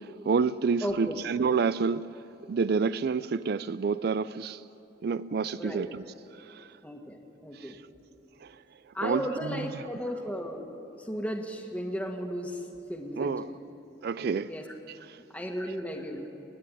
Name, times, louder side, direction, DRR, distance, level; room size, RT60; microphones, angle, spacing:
voice 1, 0.3-2.1 2.5-4.6 5.0-6.0 6.5-6.7 7.6-7.8 8.4-8.5 9.0-9.8 13.2-13.5 14.0-14.5 14.9-15.2, right 5 dB, 55° right, 0.4 m, -29 dB
voice 2, 0.8-1.2 5.6-5.9 6.8-7.7 8.9-10.7 11.1-12.6 12.9-13.6 14.5-14.6 15.3-16.3, equal, 10° left, 1.6 m, -35 dB
30.0 x 10.0 x 9.8 m
head